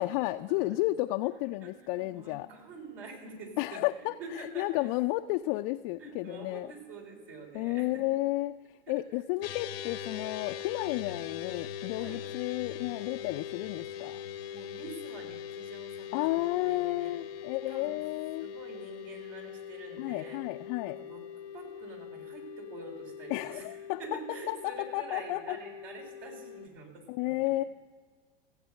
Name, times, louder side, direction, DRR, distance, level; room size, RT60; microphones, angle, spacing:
voice 1, 0.0-2.5 3.6-4.1 4.4-6.7 7.5-8.6 8.9-14.2 16.1-18.5 20.0-21.0 23.3-24.2 24.5-25.6 27.1-27.6, left 18 dB, 45° left, 7 dB, 0.4 m, -32 dB
voice 2, 1.6-4.9 6.0-8.0 8.9-9.0 12.0-12.2 14.5-17.2 17.7-18.0 18.4-20.5 20.9-27.3, right 3 dB, 65° right, 1 dB, 3.7 m, -47 dB
sound 1, 9.4-26.7, left 9 dB, 80° left, 0.8 m, -42 dB
15.5 x 8.0 x 6.4 m, 1.5 s
hypercardioid pair, 110°, 30 cm